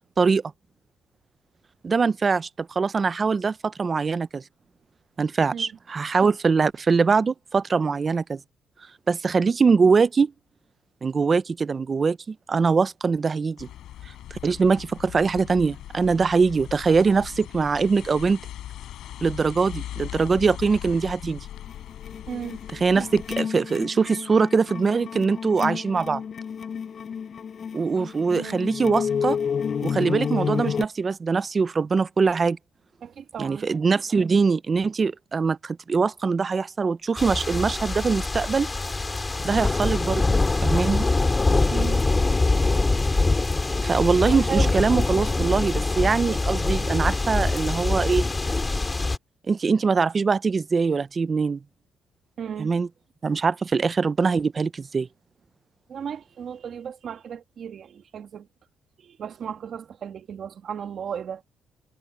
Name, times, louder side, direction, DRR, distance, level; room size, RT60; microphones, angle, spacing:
voice 1, 1.8-4.4 5.2-8.4 9.1-10.3 11.0-13.7 14.3-18.4 19.2-21.5 22.7-26.2 27.7-29.4 29.8-32.6 33.4-38.7 39.4-40.2 40.6-41.1 43.8-48.3 49.5-51.6 52.6-52.9 53.2-55.1, right 5 dB, 30° right, 0.6 m, -22 dB
sound 1, 13.6-23.4, left 12 dB, 75° left, 5.4 m, -39 dB
sound 2, 21.7-30.9, left 7 dB, 45° left, 6.9 m, -30 dB
voice 2, 22.3-22.6 28.3-28.6 33.0-33.7 41.7-42.0 44.3-44.7 49.0-49.1 52.4-52.7 55.9-58.5 59.0-61.4, right 7 dB, 50° right, 1.8 m, -35 dB
sound 3, 37.2-49.2, left 3 dB, 20° left, 2.3 m, -24 dB
cardioid pair, 110°, 0 cm